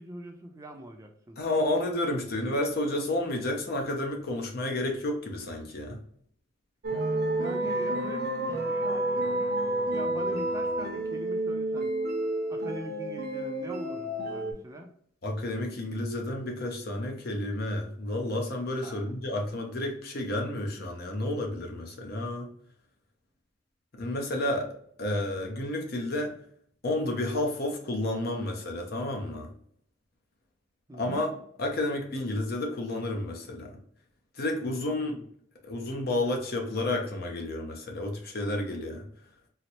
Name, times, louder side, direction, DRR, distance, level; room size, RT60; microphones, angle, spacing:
voice 1, 0.0-1.4 7.4-9.5 9.8-11.9 12.5-14.9 18.8-19.1 30.9-31.2 34.9-35.3, right 1 dB, 15° right, 3 dB, 0.4 m, -42 dB
voice 2, 1.4-6.0 15.2-22.5 24.0-24.7 25.0-26.4 26.8-29.5 31.0-31.3 31.6-33.8 34.4-35.1 35.6-39.1, left 1 dB, 55° left, 2 dB, 0.7 m, -31 dB
sound 1, 6.8-14.5, right 1 dB, 55° right, 0.6 m, -30 dB
4.0 x 2.0 x 2.9 m, 0.62 s
head